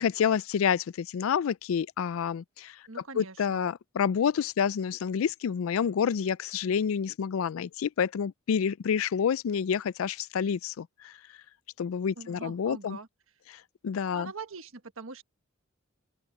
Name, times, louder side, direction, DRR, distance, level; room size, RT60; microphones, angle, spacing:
voice 1, 0.0-2.8 3.2-11.1 11.8-13.0 13.5-14.3, left 7 dB, 75° left, 0.4 m, -28 dB
voice 2, 2.9-3.7 12.2-13.1 14.1-15.2, right 4 dB, 75° right, 1.4 m, -43 dB
open air
head